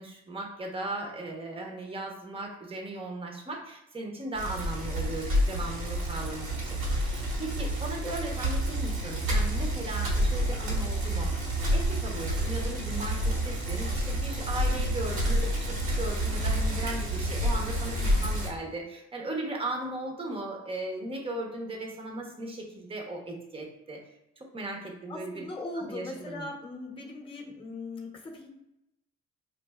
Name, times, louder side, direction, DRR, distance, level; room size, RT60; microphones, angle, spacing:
voice 1, 0.0-11.4 11.7-24.0 24.4-25.5 25.7-26.5, right 2 dB, 20° right, 1 dB, 0.8 m, -37 dB
Bicycle, 4.4-18.5, equal, 70° right, 1.1 m, -29 dB
voice 2, 25.1-28.5, left 2 dB, 15° left, 0 dB, 0.8 m, -39 dB
5.2 x 2.6 x 2.3 m, 0.86 s
cardioid pair, 90°, 30 cm